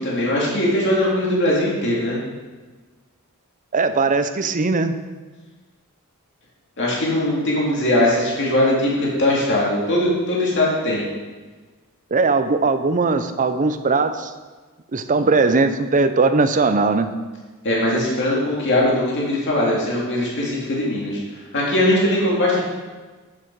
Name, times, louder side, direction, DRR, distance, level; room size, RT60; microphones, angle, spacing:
voice 1, 0.0-2.2 6.8-11.0 17.6-21.2 21.5-22.6, left 1 dB, 55° left, -4 dB, 2.5 m, -20 dB
voice 2, 3.7-5.0 12.1-14.3 14.9-17.1, right 3 dB, 35° right, 9 dB, 0.6 m, -19 dB
8.6 x 7.4 x 4.7 m, 1.3 s
head